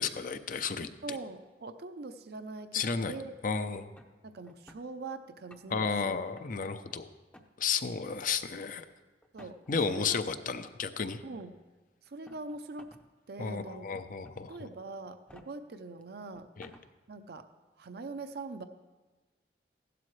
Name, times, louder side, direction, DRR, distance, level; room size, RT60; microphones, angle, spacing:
voice 1, 0.0-0.9 2.7-3.1 3.4-3.9 5.7-7.1 7.6-8.8 9.7-11.2 13.4-14.6 16.6-16.7, left 5 dB, 50° left, 10 dB, 0.6 m, -32 dB
voice 2, 1.0-3.3 4.2-6.2 9.3-9.6 9.9-10.2 11.2-11.5 12.0-13.0 13.3-13.9 14.5-16.5 17.1-17.5 17.8-18.6, right 3 dB, 65° right, 9 dB, 0.6 m, -42 dB
sound 1, 3.9-4.8 5.3-5.9 6.3-6.9 7.3-7.5 8.0-8.2 9.2-9.8 10.9-11.0 12.1-13.0 13.4-13.5 14.2-14.6 15.1-15.4 16.0-16.1 16.3-16.8, left 1 dB, 5° left, 0.6 m, -55 dB
15.5 x 12.0 x 3.2 m, 1.3 s
head